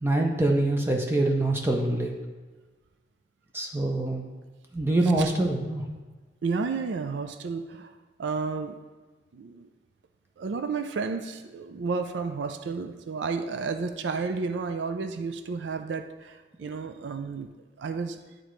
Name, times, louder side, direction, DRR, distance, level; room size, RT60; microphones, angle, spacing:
voice 1, 0.0-2.1 3.5-4.3 4.7-5.8, right 2 dB, 15° right, 1 dB, 0.5 m, -25 dB
voice 2, 6.4-8.8 9.3-9.7 10.4-17.5 17.8-18.2, right 4 dB, 85° right, 8 dB, 0.4 m, -32 dB
11.0 x 3.8 x 3.1 m, 1.3 s
head